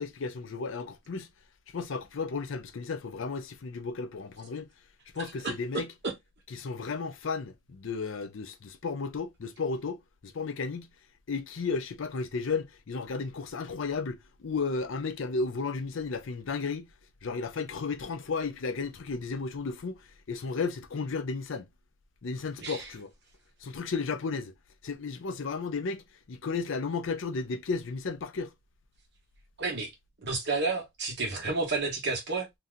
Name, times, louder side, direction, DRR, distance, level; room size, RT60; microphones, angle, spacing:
voice 1, 0.0-1.3 1.7-4.7 5.1-5.9 6.5-10.9 11.3-16.9 17.2-21.7 22.2-23.1 23.6-24.5 24.8-28.5, left 4 dB, 70° left, 0.5 m, -34 dB
voice 2, 29.6-29.9 30.2-32.5, right 3 dB, 55° right, 1.1 m, -31 dB
2.7 x 2.2 x 3.6 m
head